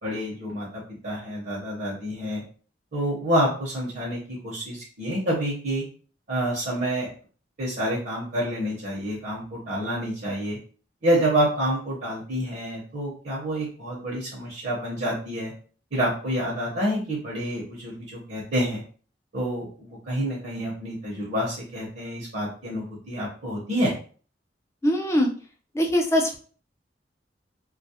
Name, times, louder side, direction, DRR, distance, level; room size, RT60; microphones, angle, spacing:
voice 1, 0.0-2.4 2.9-5.8 6.3-7.1 7.6-10.6 11.0-15.5 15.9-18.8 19.3-23.9, equal, 55° right, -4 dB, 0.8 m, -28 dB
voice 2, 24.8-25.3 25.7-26.4, equal, 15° left, 2 dB, 0.4 m, -22 dB
2.3 x 2.0 x 2.7 m, 0.42 s
head